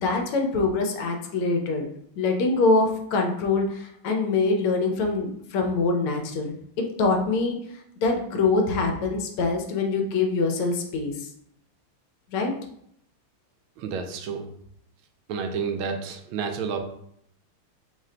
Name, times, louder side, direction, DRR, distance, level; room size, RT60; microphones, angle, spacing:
voice 1, 0.0-1.8 2.2-6.5 7.0-7.6 8.0-11.1 12.3-12.5, left 3 dB, 85° left, 2 dB, 1.6 m, -24 dB
voice 2, 13.8-14.5 15.3-16.8, right 6 dB, 80° right, 5 dB, 1.4 m, -30 dB
4.4 x 2.1 x 3.6 m, 0.69 s
omnidirectional pair, 2.3 m